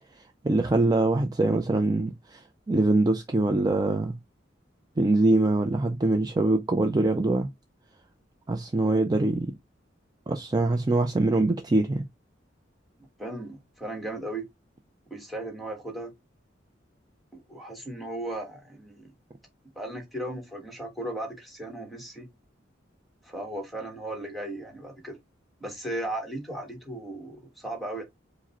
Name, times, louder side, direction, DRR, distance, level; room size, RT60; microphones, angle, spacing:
voice 1, 0.4-4.1 5.0-7.5 8.5-9.5 10.3-12.0, right 2 dB, 20° right, 0.4 m, -23 dB
voice 2, 13.2-14.5 15.1-16.1 17.3-19.1 19.7-22.3 23.2-25.2 25.6-28.0, right 1 dB, ahead, 1.2 m, -36 dB
4.9 x 2.1 x 4.2 m
head